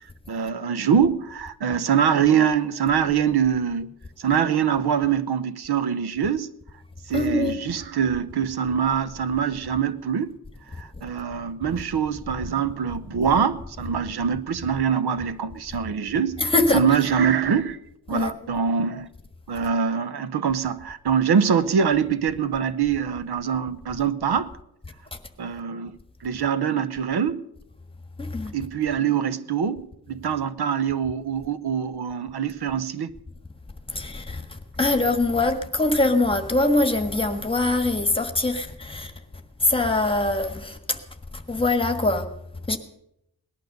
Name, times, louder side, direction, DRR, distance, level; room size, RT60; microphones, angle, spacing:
voice 1, 0.3-3.9 4.2-6.5 7.1-10.4 10.7-16.4 16.7-17.8 18.1-19.1 19.5-24.5 25.4-27.4 28.5-33.1, right 7 dB, 80° right, 0.9 m, -24 dB
voice 2, 7.1-7.6 16.4-16.8 18.1-18.3 28.2-28.5 33.9-34.4 34.8-39.1 39.6-41.0 41.3-42.2 42.7-42.8, left 2 dB, 15° left, 1.4 m, -23 dB
18.5 x 12.0 x 6.6 m
wide cardioid pair, 170°, 38 cm